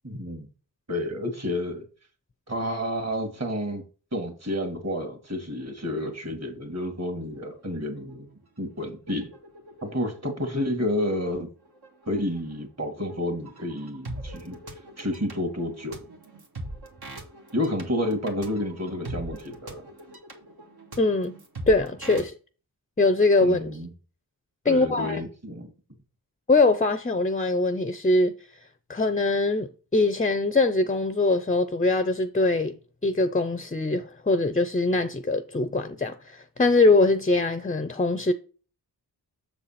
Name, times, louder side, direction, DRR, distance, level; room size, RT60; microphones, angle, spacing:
voice 1, 0.0-0.5 0.9-1.8 2.5-3.8 4.1-8.3 8.6-9.3 9.8-11.5 12.1-14.6 15.0-16.0 17.5-19.8 23.4-23.9 24.7-25.7, left 1 dB, 40° right, 2.1 m, -30 dB
sound 1, 6.8-6.9 7.2-7.6 8.0-22.3, right 1 dB, 70° right, 1.7 m, -43 dB
voice 2, 21.0-21.3 21.7-22.3 23.0-23.8 24.6-25.2 26.5-28.3 28.9-38.3, left 2 dB, 20° left, 0.6 m, -22 dB
7.1 x 4.2 x 5.8 m
wide cardioid pair, 70°, 40 cm